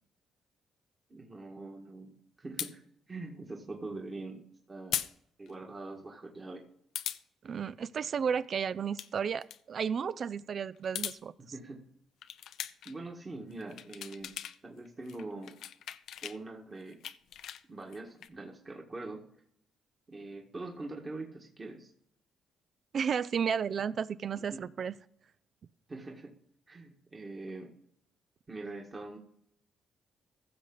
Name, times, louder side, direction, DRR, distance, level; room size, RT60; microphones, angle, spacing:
voice 1, 1.1-2.8 3.1-4.4 4.7-5.0 5.4-6.7 11.4-11.8 12.9-14.3 14.6-15.6 16.2-17.0 17.7-19.2 20.1-21.9 24.4-24.6 25.9-26.3 26.7-27.7 28.5-29.2, right 2 dB, 30° right, 0 dB, 1.8 m, -43 dB
sound 1, 2.6-2.7 4.9-5.1 5.5-5.6 6.9-7.2 8.7-9.1 9.4-9.6 10.7-11.2 12.2-12.9 13.5-14.6 14.9-16.4 16.8-18.3, left 10 dB, 75° left, 0.5 m, -39 dB
voice 2, 7.4-11.3 22.9-25.0, right 7 dB, 50° right, 17 dB, 0.4 m, -33 dB
15.5 x 6.6 x 4.0 m, 0.70 s
cardioid pair, 90°, 0 cm